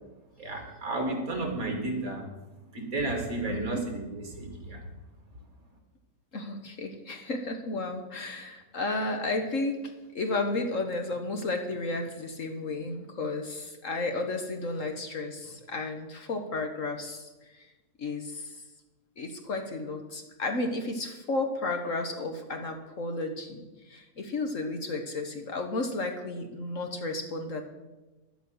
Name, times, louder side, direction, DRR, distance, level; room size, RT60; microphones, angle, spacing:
voice 1, 0.4-2.3 2.7-4.8, right 2 dB, 55° right, 3 dB, 2.5 m, -32 dB
voice 2, 3.5-3.8 6.3-9.8 10.1-17.6 18.0-18.6 19.2-27.6, left 2 dB, 50° left, 5 dB, 1.4 m, -33 dB
11.0 x 8.4 x 7.8 m, 1.1 s
omnidirectional pair, 1.8 m